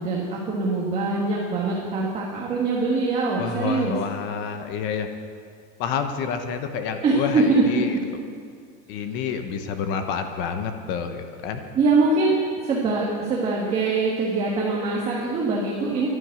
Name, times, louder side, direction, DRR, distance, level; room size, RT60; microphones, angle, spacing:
voice 1, 0.0-4.0 7.0-8.0 11.7-16.1, right 3 dB, 20° right, -3 dB, 1.5 m, -23 dB
voice 2, 3.4-5.1 5.8-8.0 8.9-11.6, left 6 dB, 40° left, 7 dB, 1.0 m, -28 dB
11.5 x 10.5 x 8.8 m, 2.1 s
supercardioid pair, 170°, 30 cm